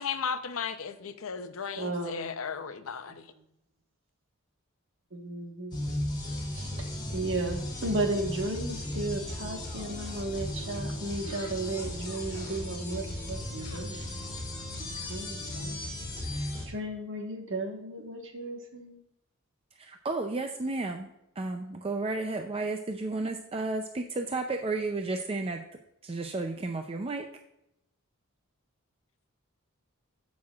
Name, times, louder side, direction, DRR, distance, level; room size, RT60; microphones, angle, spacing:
voice 1, 0.0-3.2, left 6 dB, 70° left, 0.7 m, -35 dB
voice 2, 1.8-2.3 3.1-3.2 5.1-5.8 6.5-14.0 14.8-15.8 16.2-19.0, right 2 dB, 60° right, 1.4 m, -35 dB
sound 1, 5.7-16.7, left 1 dB, 20° left, 2.9 m, -36 dB
voice 3, 19.8-21.1 21.4-25.6 26.0-27.3, right 3 dB, 25° right, 0.5 m, -32 dB
14.5 x 6.2 x 2.4 m
head